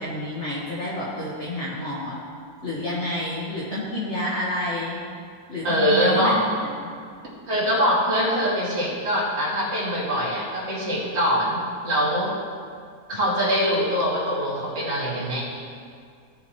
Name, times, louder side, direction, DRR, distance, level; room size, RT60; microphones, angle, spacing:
voice 1, 0.0-2.2 2.6-5.0 5.5-6.4 6.6-6.9 13.1-13.2, left 1 dB, 45° left, -8 dB, 1.8 m, -29 dB
voice 2, 5.6-6.4 7.5-12.3 13.1-15.4, equal, 40° right, -7 dB, 2.5 m, -23 dB
17.0 x 7.3 x 3.1 m, 2.2 s
omnidirectional pair, 1.8 m